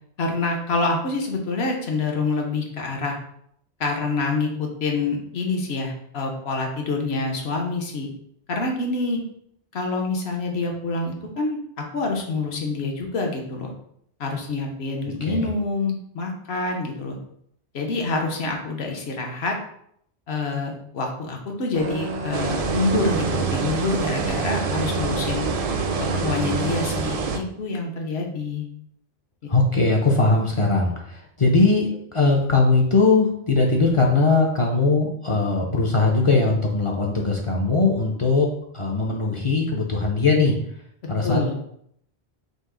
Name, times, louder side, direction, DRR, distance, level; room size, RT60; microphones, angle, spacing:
voice 1, 0.2-3.2 3.8-8.1 8.5-9.2 9.7-13.7 14.2-17.2 17.7-19.5 20.3-25.4 26.1-28.6 29.4-29.5 41.2-41.5, left 3 dB, 70° left, 2 dB, 1.1 m, -26 dB
sound 1, 21.7-26.9, right 3 dB, 75° right, 0.9 m, -31 dB
sound 2, 22.3-27.4, right 5 dB, 60° right, 0.4 m, -26 dB
voice 2, 29.5-38.5 38.7-40.5 41.1-41.5, left 3 dB, 40° left, -1 dB, 0.5 m, -20 dB
5.2 x 2.0 x 3.7 m, 0.69 s
omnidirectional pair, 1.1 m